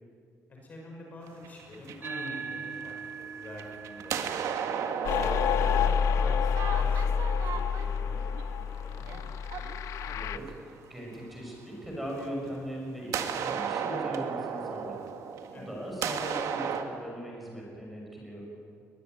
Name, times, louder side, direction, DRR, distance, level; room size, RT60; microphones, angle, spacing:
voice 1, 0.5-2.9 3.4-4.6 5.1-5.9 6.2-9.3 15.5-15.7, left 1 dB, 30° left, -1 dB, 5.7 m, -46 dB
sound 1, 1.3-3.0 3.4-10.7 12.2-12.3 13.1-16.8, right 7 dB, 80° right, 1.9 m, -35 dB
sound 2, 2.0-10.7, right 5 dB, 40° right, 2.4 m, -45 dB
sound 3, 5.0-10.4, left 7 dB, 75° left, 0.9 m, -28 dB
voice 2, 10.1-10.4 10.9-15.0 15.5-18.4, equal, ahead, -2 dB, 6.1 m, -39 dB
21.5 x 21.5 x 9.2 m, 2.3 s
cardioid pair, 165°, 5 cm